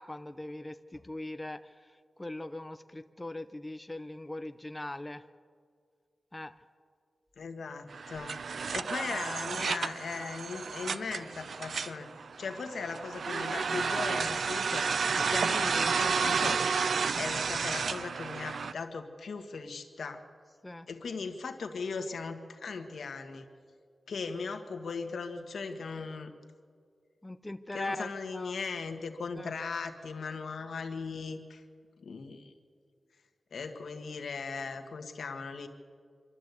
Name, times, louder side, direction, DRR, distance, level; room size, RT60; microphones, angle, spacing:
voice 1, 0.0-5.3 6.3-6.5 20.6-20.9 27.2-28.5 29.3-29.5, left 1 dB, 15° left, 9 dB, 0.5 m, -41 dB
voice 2, 7.4-8.4 8.7-12.1 12.4-16.6 17.2-20.2 20.9-23.5 24.1-26.3 27.7-31.6 32.0-32.5 33.5-35.7, left 4 dB, 75° left, 6 dB, 1.6 m, -38 dB
sound 1, 7.9-18.7, right 5 dB, 65° right, 0.5 m, -31 dB
25.5 x 12.5 x 8.2 m, 2.1 s
wide cardioid pair, 170°, 0 cm